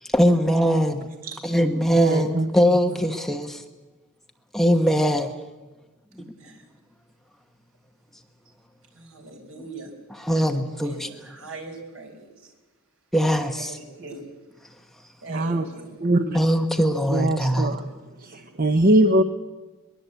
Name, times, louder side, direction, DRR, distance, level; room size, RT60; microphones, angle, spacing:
voice 1, 0.0-1.1 1.4-3.6 4.5-5.3 6.2-6.3 10.1-11.1 13.1-13.8 16.3-17.7, equal, ahead, 4 dB, 1.1 m, -21 dB
voice 2, 1.9-2.5 15.3-15.6 16.0-16.4 17.1-17.9 18.2-19.2, right 1 dB, 40° right, 7 dB, 1.0 m, -21 dB
voice 3, 6.2-6.6 8.9-9.9 10.8-12.5 13.6-14.4 15.2-16.0, right 3 dB, 70° right, 3 dB, 5.0 m, -41 dB
22.0 x 22.0 x 8.2 m, 1.2 s
head